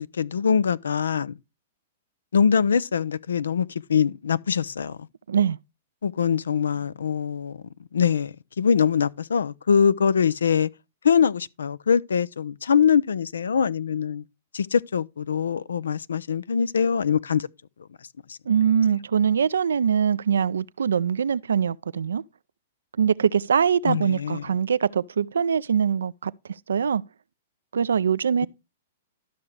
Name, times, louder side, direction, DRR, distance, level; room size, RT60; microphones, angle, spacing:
voice 1, 0.0-1.4 2.3-5.0 6.0-7.6 7.9-10.7 11.0-14.2 14.5-17.5 18.3-18.4 23.9-24.4, left 7 dB, 90° left, 0.4 m, -23 dB
voice 2, 18.5-22.2 23.0-26.3 26.7-27.0 27.7-28.5, right 7 dB, 90° right, 0.4 m, -23 dB
13.0 x 6.0 x 3.3 m
hypercardioid pair, 130°, 0 cm